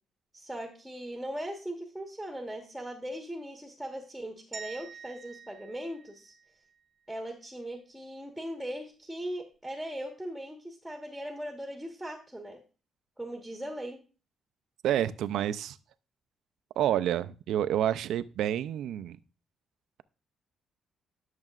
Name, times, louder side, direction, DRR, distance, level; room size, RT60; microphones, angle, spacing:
voice 1, 0.3-6.3 7.1-12.6 13.2-14.0, equal, ahead, 3 dB, 1.3 m, -39 dB
sound 1, 4.5-6.8, right 6 dB, 45° right, 0.7 m, -47 dB
voice 2, 14.8-15.8 16.8-19.2, right 11 dB, 80° right, 13 dB, 0.4 m, -28 dB
10.5 x 6.5 x 2.4 m, 0.35 s
cardioid pair, 90°, 0 cm